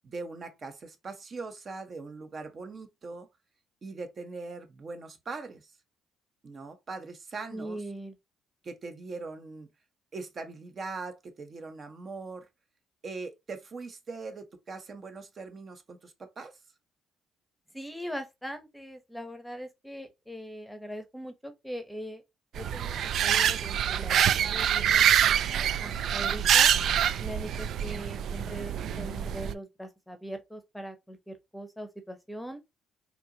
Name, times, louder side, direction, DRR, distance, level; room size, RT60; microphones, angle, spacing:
voice 1, 0.0-3.3 3.8-5.7 6.4-7.8 8.6-9.7 10.1-12.5 13.0-16.5, right 3 dB, 40° right, 0.9 m, -41 dB
voice 2, 7.5-8.2 17.7-22.2 22.5-26.7 27.2-32.6, right 1 dB, 5° left, 0.9 m, -41 dB
sound 1, 22.5-29.5, right 9 dB, 65° right, 0.3 m, -25 dB
4.3 x 2.8 x 2.8 m
cardioid pair, 95°, 0 cm